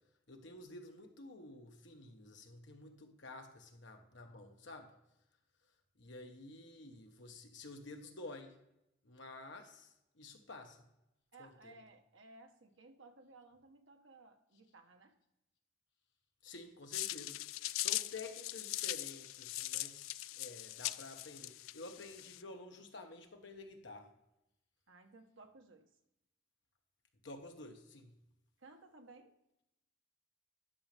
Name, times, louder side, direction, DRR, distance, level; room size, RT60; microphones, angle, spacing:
voice 1, 0.3-4.9 6.0-8.5 9.0-9.9 10.2-10.8 11.4-11.7 16.4-17.4 17.7-24.1 27.2-28.2, left 2 dB, 65° left, 4 dB, 1.2 m, -51 dB
voice 2, 11.3-15.2 24.9-25.9 28.6-29.3, right 3 dB, 75° right, 5 dB, 1.1 m, -59 dB
sound 1, 16.9-22.4, left 16 dB, 90° left, 0.3 m, -41 dB
11.0 x 6.4 x 3.4 m, 0.85 s
head